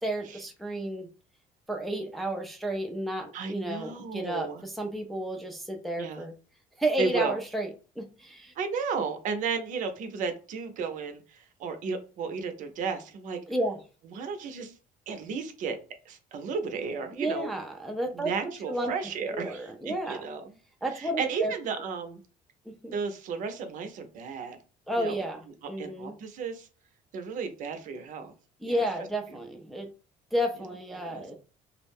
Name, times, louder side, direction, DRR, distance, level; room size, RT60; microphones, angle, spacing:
voice 1, 0.0-1.1 1.7-6.3 6.8-7.7 8.0-8.5 13.5-13.8 17.2-18.9 19.3-20.2 20.8-21.5 22.7-22.9 24.9-25.4 25.7-26.1 28.6-29.9 30.3-31.3, right 1 dB, ahead, 3 dB, 0.4 m, -32 dB
voice 2, 3.3-4.6 6.0-6.2 7.0-7.4 8.6-13.4 14.1-14.7 15.1-15.8 16.1-17.5 18.1-20.4 20.9-22.2 22.9-24.6 25.0-25.2 25.8-26.7 27.1-28.3 28.6-28.8 31.0-31.2, right 5 dB, 60° right, 7 dB, 0.5 m, -33 dB
2.4 x 2.0 x 3.4 m, 0.36 s
cardioid pair, 130°, 15 cm